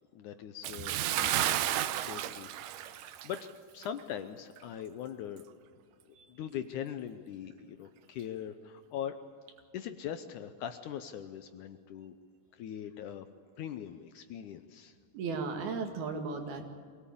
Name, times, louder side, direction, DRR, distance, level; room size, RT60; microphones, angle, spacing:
voice 1, 0.0-1.3 1.6-3.5 3.7-5.5 6.0-9.2 9.7-12.2 12.5-13.3 13.6-15.0, left 9 dB, 75° left, 9 dB, 1.9 m, -41 dB
Bathtub (filling or washing) / Splash splatter, 0.6-3.5 3.8-4.0 4.6-4.7, right 12 dB, 75° right, 2.1 m, -32 dB
voice 2, 15.1-16.7, right 4 dB, 90° right, 4 dB, 4.0 m, -35 dB
23.0 x 17.5 x 8.5 m, 2.1 s
omnidirectional pair, 4.3 m